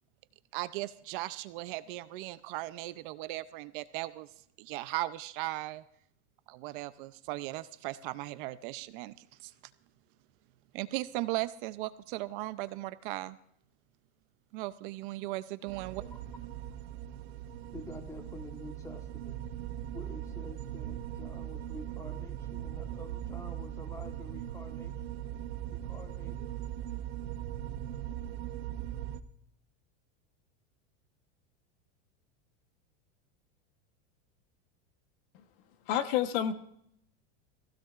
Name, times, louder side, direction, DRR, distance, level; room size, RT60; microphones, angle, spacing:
voice 1, 0.5-4.3 4.6-5.8 6.5-9.1 9.4-9.5 10.7-13.4 14.5-16.0, right 18 dB, 50° right, 0.5 m, -37 dB
sound 1, 15.7-29.2, right 11 dB, 65° right, 1.0 m, -40 dB
voice 2, 17.7-19.4 19.9-25.0 25.7-26.5, left 2 dB, 10° left, 1.2 m, -48 dB
voice 3, 35.9-36.5, left 10 dB, 55° left, 1.2 m, -28 dB
21.5 x 15.5 x 2.4 m
supercardioid pair, 155°, 34 cm